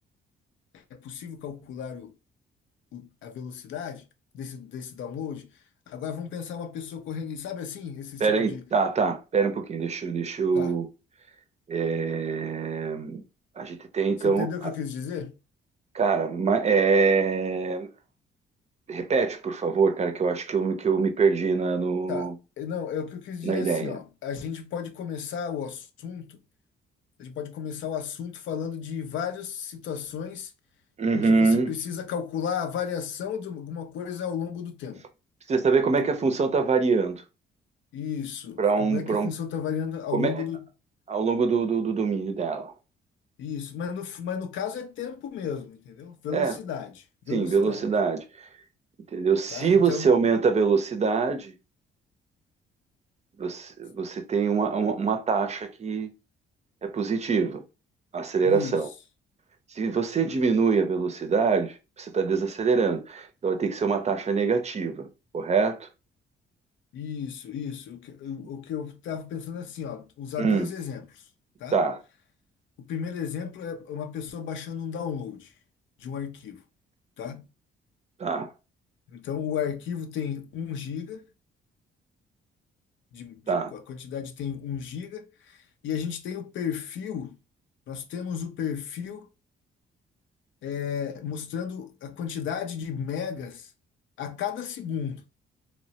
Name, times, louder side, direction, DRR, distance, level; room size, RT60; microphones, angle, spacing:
voice 1, 0.7-2.2 2.9-4.0 4.3-5.5 5.9-8.6 10.5-10.7 14.2-15.4 22.1-22.3 22.6-26.4 27.2-30.5 31.1-35.1 37.9-40.7 43.4-47.9 49.5-50.1 58.4-58.8 66.9-71.3 71.6-71.8 72.8-75.5 76.0-76.6 77.2-77.5 79.1-81.2 83.1-87.4 87.9-89.3 90.6-93.7 94.2-95.2, left 7 dB, 75° left, 0.5 m, -34 dB
voice 2, 8.2-10.9 11.7-13.2 13.6-14.7 15.9-17.9 18.9-22.3 23.4-23.9 31.0-31.7 35.5-37.2 38.6-39.3 40.1-40.3 41.1-42.7 46.3-46.6 47.3-48.2 49.1-51.5 53.4-56.1 56.8-57.6 58.1-58.9 59.7-65.1 65.3-65.9 70.4-70.7 71.7-72.0 78.2-78.5 83.5-83.7, right 5 dB, 35° right, 0.5 m, -24 dB
2.9 x 2.1 x 2.7 m
cardioid pair, 90°, 20 cm